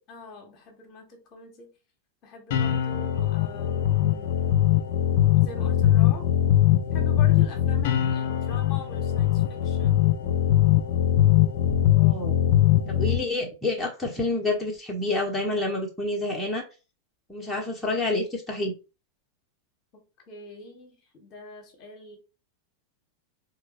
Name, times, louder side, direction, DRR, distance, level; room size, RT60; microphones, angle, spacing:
voice 1, 0.1-1.7 2.2-4.4 5.3-6.3 6.9-10.1 19.9-22.2, left 3 dB, 40° left, 1.1 m, -44 dB
sound 1, 2.5-13.2, left 12 dB, 55° left, 0.4 m, -21 dB
voice 2, 11.9-12.4 12.8-16.6 17.3-18.7, left 2 dB, 5° left, 1.1 m, -28 dB
4.2 x 3.0 x 2.9 m
figure-of-eight pair, 90°, 0 cm